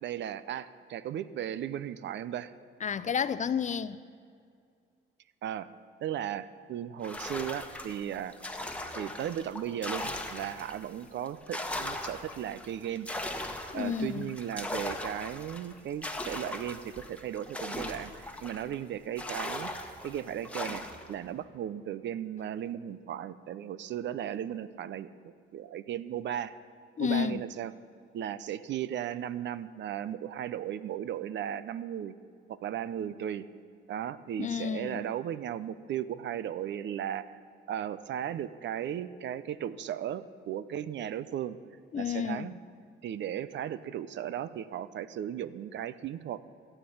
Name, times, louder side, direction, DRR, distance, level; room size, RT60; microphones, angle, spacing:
voice 1, 0.0-2.5 5.4-5.7 6.0-8.3 8.9-13.1 13.7-19.7 20.0-26.5 27.0-27.7 28.1-32.1 32.5-33.4 33.9-37.3 37.7-41.6 42.0-42.6 43.0-46.5, right 10 dB, 65° right, 0.6 m, -36 dB
voice 2, 2.8-4.0 13.7-14.3 27.0-27.4 34.4-35.1 41.9-42.5, left 7 dB, 40° left, 0.5 m, -31 dB
sound 1, 7.0-10.9 11.3-18.8 19.2-21.1, left 1 dB, 5° left, 1.3 m, -39 dB
14.0 x 8.0 x 8.5 m
cardioid pair, 90°, 20 cm